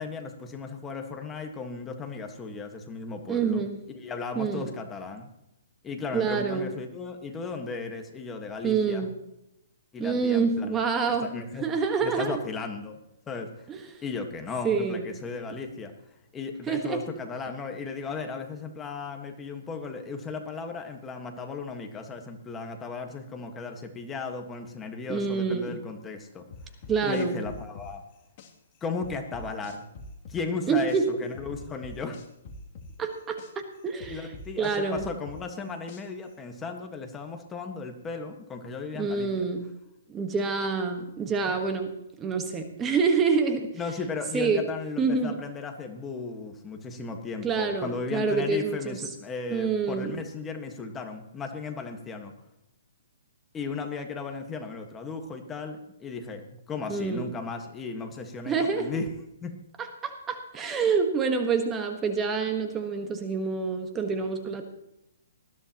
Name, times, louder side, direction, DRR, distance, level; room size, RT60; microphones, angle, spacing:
voice 1, 0.0-3.6 3.9-5.3 5.8-9.1 9.9-11.7 12.0-13.0 13.3-13.7 14.0-15.9 16.3-26.5 27.0-28.0 28.8-29.9 30.3-32.2 34.1-39.3 43.8-52.3 53.5-59.1 59.4-59.6, left 4 dB, 15° left, 4 dB, 1.6 m, -36 dB
voice 2, 3.3-3.8 4.4-4.7 6.1-6.7 8.6-9.1 10.0-12.4 13.7-14.0 14.6-15.1 16.7-17.0 25.1-25.8 26.9-27.4 30.7-31.1 33.0-35.1 38.9-39.7 40.1-43.7 44.3-44.7 45.0-45.4 47.4-49.0 49.5-50.2 56.9-57.3 58.4-59.0 59.8-64.6, right 5 dB, 15° right, 5 dB, 1.4 m, -27 dB
sound 1, 26.5-28.5 29.0-31.0 31.3-33.5 34.0-36.3, left 3 dB, 35° left, 2.7 m, -44 dB
20.0 x 14.5 x 3.0 m, 0.85 s
hypercardioid pair, 155°, 0 cm